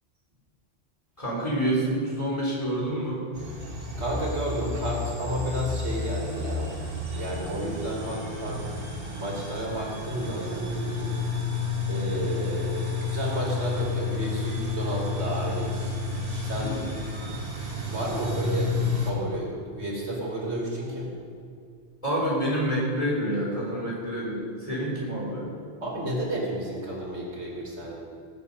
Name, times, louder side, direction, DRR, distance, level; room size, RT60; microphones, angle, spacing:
voice 1, 1.2-3.2 12.1-12.3 16.5-16.9 22.0-25.5, right 1 dB, 30° left, -6 dB, 4.1 m, -28 dB
sound 1, 3.3-19.1, left 3 dB, 55° right, 2.1 m, -31 dB
voice 2, 4.0-6.8 7.1-8.6 9.2-11.2 11.9-15.8 16.4-16.8 17.8-21.2 25.8-28.0, right 1 dB, 85° right, -3 dB, 3.0 m, -31 dB
18.5 x 7.9 x 5.5 m, 2.3 s
omnidirectional pair, 1.1 m